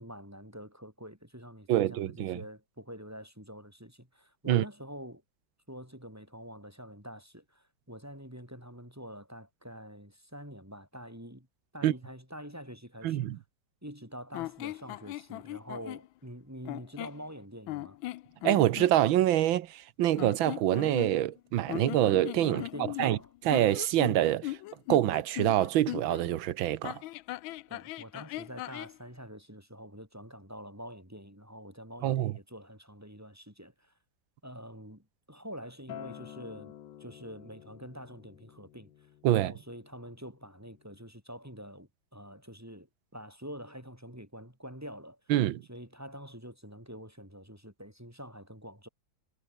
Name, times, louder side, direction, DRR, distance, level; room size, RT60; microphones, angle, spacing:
voice 1, 0.0-5.2 5.7-11.5 11.7-13.2 13.8-18.0 22.5-23.3 27.7-33.9 34.4-36.7 37.0-38.9 39.3-42.9 43.1-45.2 45.7-48.9, equal, 5° right, 5.4 m, -46 dB
voice 2, 1.7-2.4 4.5-4.6 11.8-11.9 13.0-13.4 18.4-22.6 23.0-23.2 23.5-24.6 24.9-27.0 32.0-32.3 39.2-39.5 45.3-45.6, right 13 dB, 80° right, 1.6 m, -26 dB
sound 1, 14.3-16.1 16.6-17.2 17.7-18.9 20.1-21.4 21.7-26.2 26.8-29.0, left 17 dB, 85° left, 1.4 m, -39 dB
Acoustic guitar, 35.9-41.1, left 11 dB, 65° left, 1.7 m, -50 dB
omnidirectional pair, 2.1 m